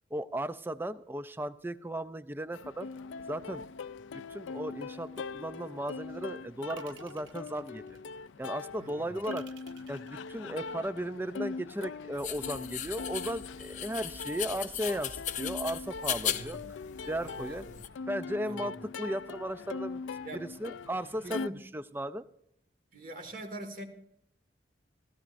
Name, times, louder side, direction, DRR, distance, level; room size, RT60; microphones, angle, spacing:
voice 1, 0.1-2.9 3.3-3.6 4.1-8.0 8.4-9.5 9.9-16.6 17.1-17.6 18.1-20.0 20.3-22.2, right 1 dB, 10° right, 13 dB, 0.4 m, -36 dB
Plucked string instrument, 2.5-21.5, left 4 dB, 90° left, 0.4 m, -42 dB
sound 1, 5.2-5.8 6.7-8.4 9.3-11.1, right 6 dB, 85° right, 0.7 m, -54 dB
voice 2, 8.8-9.2 16.3-16.7 17.2-17.8 18.5-18.8 20.2-20.5 21.2-21.6 22.9-23.8, right 1 dB, 45° right, 5 dB, 1.9 m, -44 dB
sound 2, 12.2-17.9, left 10 dB, 40° left, 0.5 m, -37 dB
16.0 x 13.5 x 2.6 m, 0.74 s
head